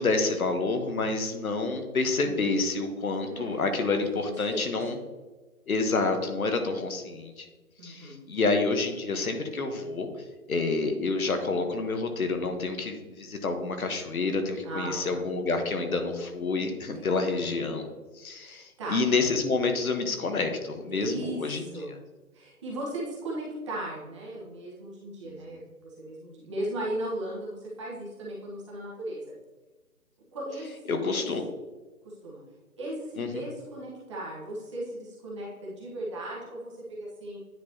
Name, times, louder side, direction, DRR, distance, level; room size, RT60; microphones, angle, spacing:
voice 1, 0.0-5.0 5.7-7.5 7.8-10.1 10.5-17.9 18.2-21.6 25.3-25.4 30.9-31.4 33.2-33.4, left 3 dB, 70° left, 6 dB, 1.2 m, -28 dB
voice 2, 3.3-4.8 7.8-8.2 14.6-15.2 16.8-17.4 18.4-19.0 20.9-21.9 22.3-29.3 30.3-31.3 32.0-32.4 32.8-37.4, right 1 dB, 20° right, -5 dB, 1.2 m, -37 dB
9.5 x 4.6 x 2.8 m, 1.2 s
figure-of-eight pair, 155°, 44 cm